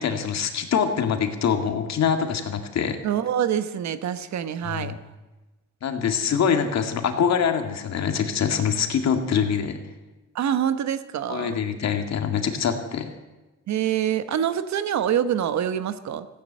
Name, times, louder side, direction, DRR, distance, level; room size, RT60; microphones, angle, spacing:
voice 1, 0.0-3.0 4.6-4.9 5.8-9.8 11.3-13.1, left 7 dB, 60° left, 6 dB, 2.1 m, -24 dB
voice 2, 3.0-4.9 10.3-11.5 13.7-16.3, right 9 dB, 65° right, 12 dB, 1.1 m, -25 dB
15.0 x 9.9 x 8.9 m, 1.1 s
cardioid pair, 90°, 30 cm